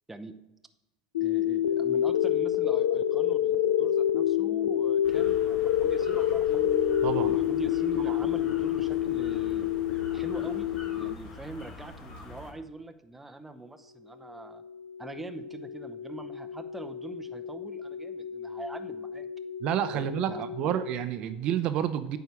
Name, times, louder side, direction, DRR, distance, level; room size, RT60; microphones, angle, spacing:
sound 1, 1.1-11.1, left 11 dB, 85° left, 0.3 m, -26 dB
voice 1, 1.2-6.7 7.2-9.7 10.1-14.6 15.0-19.3 19.9-20.7, right 2 dB, 10° right, 6 dB, 0.8 m, -43 dB
sound 2, 5.0-12.5, left 2 dB, 45° left, 2.1 m, -45 dB
sound 3, 6.5-10.7 13.7-21.0, left 4 dB, 60° left, 2.3 m, -40 dB
voice 2, 7.0-7.3 8.1-8.2 19.6-22.2, right 11 dB, 55° right, 10 dB, 0.7 m, -29 dB
9.0 x 4.6 x 6.9 m, 0.92 s
hypercardioid pair, 90°, 2 cm